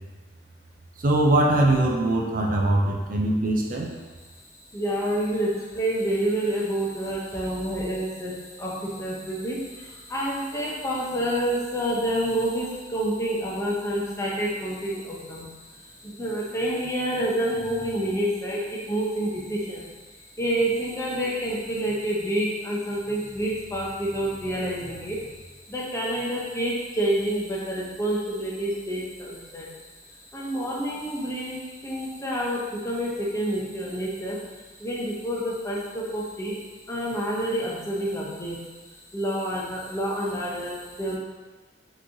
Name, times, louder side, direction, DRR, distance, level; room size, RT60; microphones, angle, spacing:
voice 1, 1.0-3.9, right 1 dB, 45° right, 0 dB, 0.4 m, -22 dB
voice 2, 4.7-15.5 16.0-19.9 20.4-25.2 25.7-29.7 30.3-34.4 34.8-36.6 36.9-38.6 39.1-41.2, right 1 dB, 15° left, -4 dB, 0.7 m, -28 dB
5.8 x 3.1 x 2.7 m, 1.3 s
head